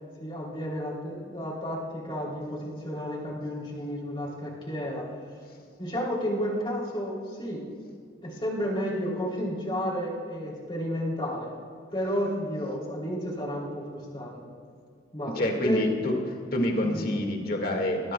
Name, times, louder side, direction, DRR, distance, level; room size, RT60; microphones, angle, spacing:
voice 1, 0.2-5.1 5.8-7.7 8.2-11.5 11.9-14.5 15.1-15.3 15.6-16.1 16.8-17.2, equal, 25° left, -3 dB, 3.1 m, -32 dB
voice 2, 15.3-16.1 16.5-18.1, left 1 dB, 50° left, 2 dB, 1.9 m, -27 dB
20.5 x 19.5 x 2.3 m, 2.2 s
head